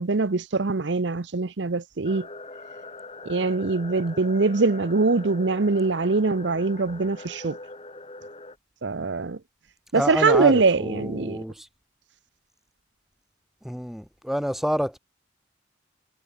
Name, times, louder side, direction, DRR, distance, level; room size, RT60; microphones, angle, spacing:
voice 1, 0.0-2.3 3.2-7.6 8.8-9.4 9.9-11.4, right 3 dB, 75° right, 0.8 m, -23 dB
sound 1, 2.0-8.6, left 2 dB, 30° left, 4.7 m, -42 dB
voice 2, 9.9-11.7 13.6-15.0, equal, ahead, 0.7 m, -28 dB
head